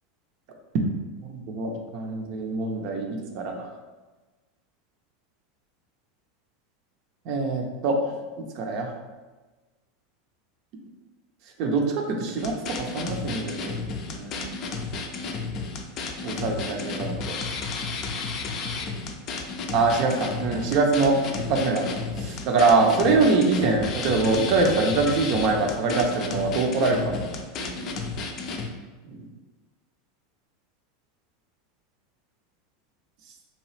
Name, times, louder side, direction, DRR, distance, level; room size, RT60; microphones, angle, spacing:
voice 1, 1.2-3.7 7.3-8.1 8.6-8.9 11.6-13.8 14.1-14.5 16.2-17.3 19.7-21.2 21.5-21.9 22.2-27.2 27.6-27.9 29.1-29.2, right 3 dB, 55° right, 2 dB, 0.5 m, -24 dB
sound 1, 12.4-28.7, left 4 dB, 45° left, 0.4 m, -32 dB
2.9 x 2.3 x 3.2 m, 1.2 s
hypercardioid pair, 85°, 0 cm